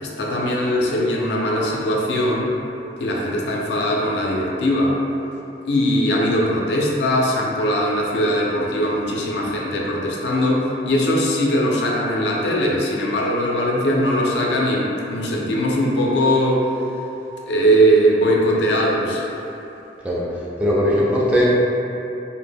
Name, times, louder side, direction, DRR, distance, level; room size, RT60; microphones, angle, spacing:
voice 1, 0.0-2.5 3.0-5.0 5.7-16.7 17.4-19.3, equal, 70° left, -2 dB, 0.4 m, -20 dB
voice 2, 20.6-21.5, equal, 10° right, -7 dB, 0.3 m, -18 dB
2.1 x 2.0 x 3.3 m, 2.9 s
head